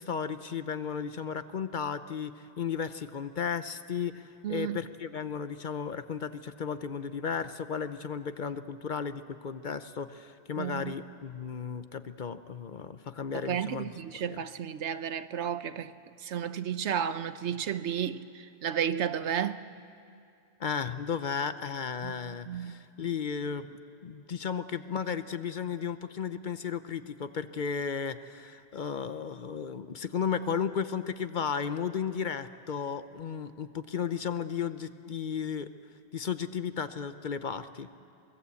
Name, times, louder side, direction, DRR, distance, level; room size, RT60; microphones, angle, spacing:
voice 1, 0.0-4.1 4.5-13.9 14.3-14.4 20.6-35.7 36.1-37.9, left 6 dB, 50° left, 0.8 m, -34 dB
voice 2, 4.4-4.8 10.6-10.9 13.3-19.7 22.0-22.8, right 8 dB, 90° right, 1.1 m, -33 dB
23.5 x 21.0 x 8.4 m
omnidirectional pair, 1.1 m